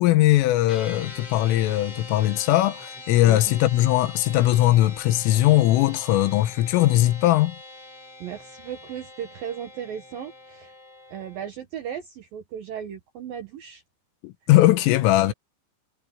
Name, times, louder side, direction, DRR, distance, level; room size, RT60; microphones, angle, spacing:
voice 1, 0.0-7.6 14.2-15.3, left 15 dB, 80° left, 3.6 m, -20 dB
sound 1, 0.7-11.5, left 3 dB, 30° left, 7.1 m, -43 dB
voice 2, 8.2-10.7 11.1-13.8 14.8-14.9 15.2-15.3, right 9 dB, 70° right, 2.3 m, -36 dB
omnidirectional pair, 5.8 m